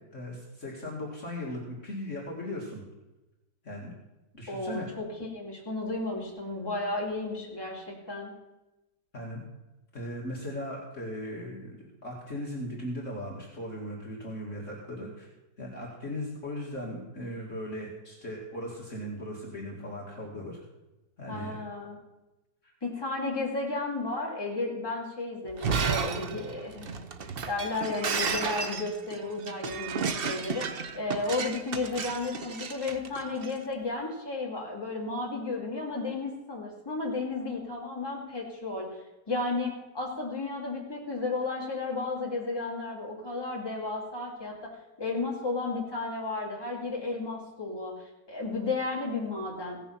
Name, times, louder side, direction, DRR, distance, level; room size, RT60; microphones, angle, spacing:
voice 1, 0.0-2.8 3.6-3.9 4.3-4.9 9.1-9.4 9.9-11.7 12.0-15.3 15.6-20.6 21.2-21.6 22.6-22.7, left 1 dB, 45° left, -3 dB, 2.3 m, -38 dB
voice 2, 4.5-5.1 5.3-8.3 21.3-22.0 22.8-27.0 27.5-38.9 39.3-44.7 45.0-49.8, left 3 dB, 15° left, -3 dB, 2.6 m, -33 dB
Shatter, 25.5-33.5, right 5 dB, 50° right, 0.7 m, -33 dB
16.0 x 7.0 x 5.8 m, 1.0 s
omnidirectional pair, 1.9 m